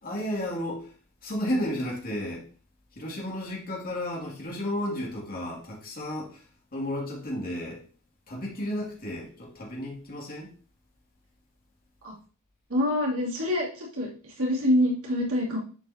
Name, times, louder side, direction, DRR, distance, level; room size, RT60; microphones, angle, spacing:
voice 1, 0.0-0.9 1.2-2.4 3.0-6.4 6.7-7.8 8.3-10.5, left 1 dB, 40° left, -2 dB, 2.5 m, -33 dB
voice 2, 12.7-15.6, left 1 dB, 70° right, -3 dB, 2.8 m, -26 dB
11.0 x 5.4 x 2.9 m, 0.39 s
head